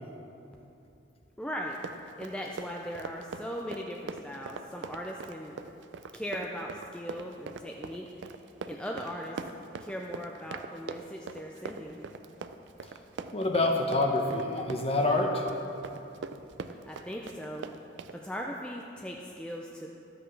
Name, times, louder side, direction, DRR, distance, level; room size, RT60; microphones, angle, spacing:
voice 1, 1.4-1.8 2.2-5.6 6.1-8.4 8.6-9.4 9.8-12.1 16.7-17.7 18.1-19.9, equal, 5° left, -1 dB, 0.4 m, -39 dB
Run, 1.7-18.2, right 4 dB, 75° right, 0.4 m, -42 dB
voice 2, 13.3-15.5, left 2 dB, 35° left, 2 dB, 0.8 m, -27 dB
13.0 x 7.8 x 3.2 m, 2.7 s
head